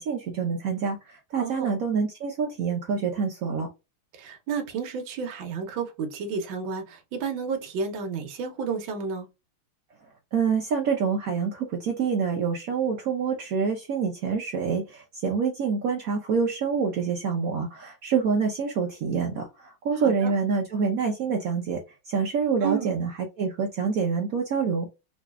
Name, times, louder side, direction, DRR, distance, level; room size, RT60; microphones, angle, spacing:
voice 1, 0.0-3.7 10.3-21.8 22.1-23.1 23.4-24.9, right 5 dB, 85° right, 0.7 m, -26 dB
voice 2, 1.4-1.7 4.1-9.3 19.9-20.3 22.6-23.0, right 5 dB, 70° right, 1.6 m, -31 dB
3.9 x 3.1 x 2.3 m
omnidirectional pair, 2.4 m